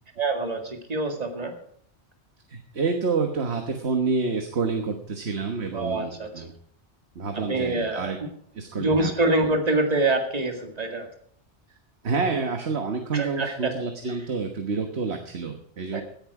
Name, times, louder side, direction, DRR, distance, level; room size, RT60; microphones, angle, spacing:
voice 1, 0.2-1.6 5.7-6.4 7.5-8.3 8.7-11.1 13.1-13.7 15.9-16.0, right 2 dB, 35° right, 3 dB, 2.1 m, -25 dB
voice 2, 2.5-6.5 7.1-8.2 8.5-9.1 9.4-9.5 12.0-16.0, right 4 dB, 65° right, 4 dB, 1.6 m, -28 dB
17.0 x 11.0 x 4.8 m, 0.65 s
omnidirectional pair, 1.2 m